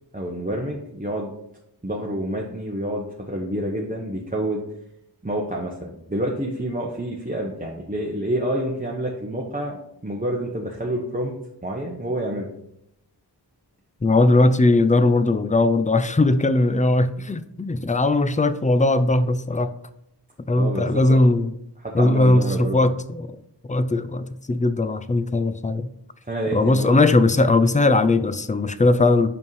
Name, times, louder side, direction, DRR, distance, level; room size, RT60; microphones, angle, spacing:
voice 1, 0.1-1.3 1.8-4.6 5.2-11.3 11.6-12.5 20.6-21.2 21.8-22.9 26.3-27.0, right 1 dB, 20° right, 1.0 m, -28 dB
voice 2, 14.0-19.7 20.5-21.5 21.9-23.4 23.6-25.9 26.5-29.3, left 2 dB, 20° left, 0.4 m, -19 dB
5.5 x 5.3 x 4.7 m
wide cardioid pair, 45°, 42 cm